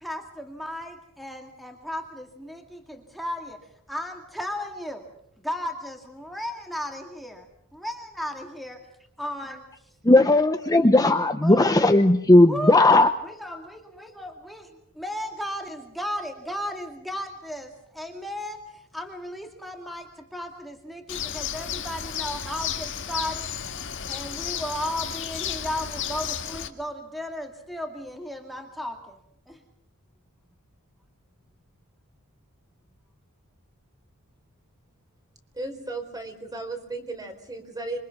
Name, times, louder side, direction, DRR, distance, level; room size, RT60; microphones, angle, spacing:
voice 1, 0.0-3.6 3.9-5.1 5.4-7.5 7.7-8.8 9.2-9.6 11.0-11.1 11.4-11.7 12.5-12.8 13.2-14.7 15.0-18.6 18.9-23.5 24.1-29.2 29.5-29.6, equal, ahead, 2 dB, 2.3 m, -35 dB
voice 2, 10.0-13.1, left 2 dB, 15° left, 7 dB, 0.9 m, -17 dB
Bird, 21.1-26.7, left 8 dB, 60° left, 1.9 m, -33 dB
voice 3, 35.5-38.0, right 2 dB, 15° right, 6 dB, 4.3 m, -35 dB
27.0 x 24.0 x 6.0 m, 0.75 s
head